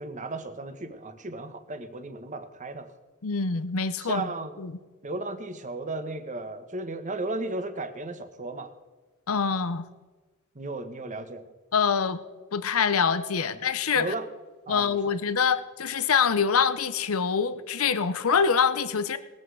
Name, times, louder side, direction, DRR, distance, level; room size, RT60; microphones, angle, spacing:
voice 1, 0.0-2.9 4.0-4.6 5.0-8.7 10.5-11.5 13.5-13.6 13.9-14.3 14.7-15.1, right 2 dB, 35° right, 9 dB, 1.2 m, -35 dB
voice 2, 3.2-4.3 4.6-4.7 9.3-9.9 11.7-12.2 12.5-14.1 14.7-19.2, left 6 dB, 75° left, 13 dB, 0.7 m, -25 dB
20.5 x 8.2 x 4.8 m, 1.3 s
head